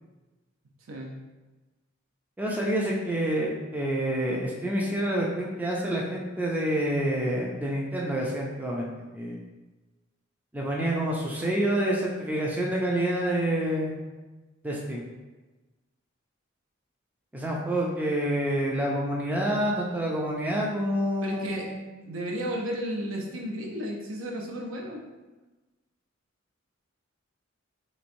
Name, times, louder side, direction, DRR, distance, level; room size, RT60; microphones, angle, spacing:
voice 1, 0.9-1.2 17.5-17.6 21.2-21.7 22.0-25.1, equal, 70° right, 0 dB, 0.6 m, -33 dB
voice 2, 2.4-8.9 9.1-9.4 10.5-14.0 14.6-15.0 17.3-21.8, right 1 dB, 10° right, -3 dB, 0.3 m, -28 dB
3.4 x 3.0 x 2.5 m, 1.2 s
head